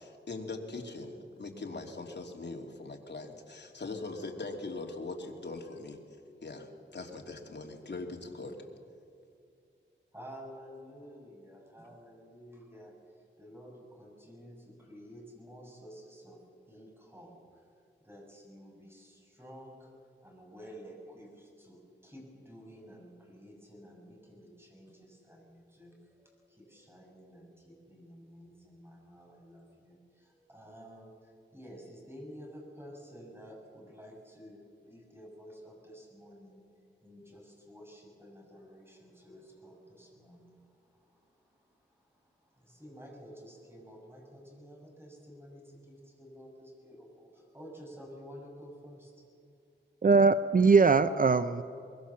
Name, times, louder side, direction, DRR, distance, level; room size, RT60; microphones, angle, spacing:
voice 1, 0.0-6.0 6.4-8.6, left 3 dB, 60° left, 1 dB, 2.9 m, -41 dB
voice 2, 10.1-16.4 16.7-17.7 18.0-19.9 20.2-36.6 37.0-49.2, equal, 10° right, 0 dB, 6.7 m, -51 dB
voice 3, 50.0-51.6, right 4 dB, 45° right, 12 dB, 0.6 m, -21 dB
23.5 x 22.5 x 7.2 m, 2.5 s
wide cardioid pair, 90°, 20 cm